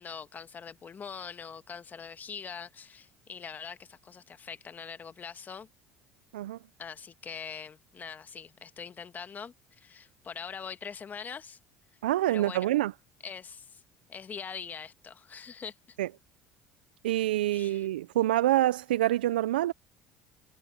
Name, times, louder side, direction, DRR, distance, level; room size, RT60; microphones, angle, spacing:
voice 1, 0.0-5.7 6.8-11.6 12.3-12.7 13.2-13.8 14.1-16.0 17.5-17.9, left 6 dB, 35° left, 1.5 m, -43 dB
voice 2, 12.0-12.9 16.0-16.1 17.0-19.7, right 14 dB, 90° right, 0.4 m, -26 dB
hypercardioid pair, 75°, 5 cm